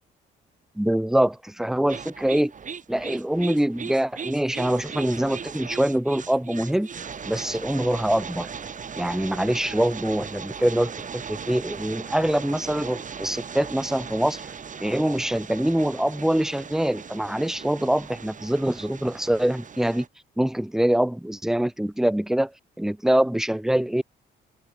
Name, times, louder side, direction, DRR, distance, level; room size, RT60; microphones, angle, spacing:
voice 1, 0.8-2.5 2.9-6.9 7.3-8.5 9.0-14.4 14.8-20.1 20.4-22.5 22.8-24.0, right 1 dB, ahead, 0.6 m, -24 dB
sound 1, 1.9-20.1, right 6 dB, 40° right, 2.1 m, -38 dB
open air
cardioid pair, 90°, 20 cm